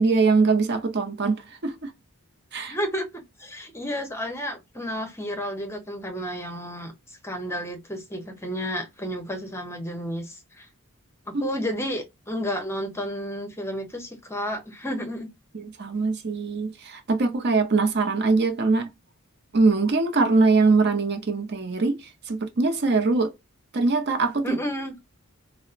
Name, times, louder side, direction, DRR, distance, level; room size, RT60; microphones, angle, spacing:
voice 1, 0.0-1.9 2.5-2.8 11.3-11.5 15.5-18.9 19.5-22.0 22.3-23.3 23.7-24.6, right 3 dB, 50° right, 0.7 m, -22 dB
voice 2, 2.7-6.9 7.2-10.7 11.3-15.3 24.4-24.9, equal, 10° left, 0.8 m, -31 dB
4.1 x 2.0 x 2.4 m
head